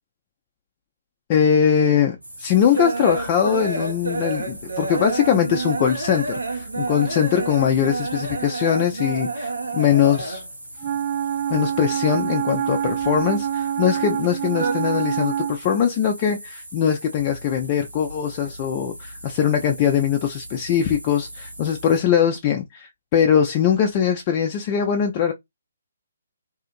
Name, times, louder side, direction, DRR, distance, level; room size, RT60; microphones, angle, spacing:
voice 1, 1.3-10.4 11.5-25.3, left 8 dB, 30° left, 0.4 m, -21 dB
sound 1, 2.1-10.7 10.9-12.1 12.4-13.8 14.1-14.7, right 3 dB, 75° right, 0.7 m, -29 dB
sound 2, 2.2-22.0, right 1 dB, 90° right, 1.1 m, -40 dB
Wind instrument woodwind instrument, 10.8-15.6, right 10 dB, 35° right, 0.3 m, -25 dB
2.7 x 2.5 x 2.4 m
figure-of-eight pair, 135°, 0 cm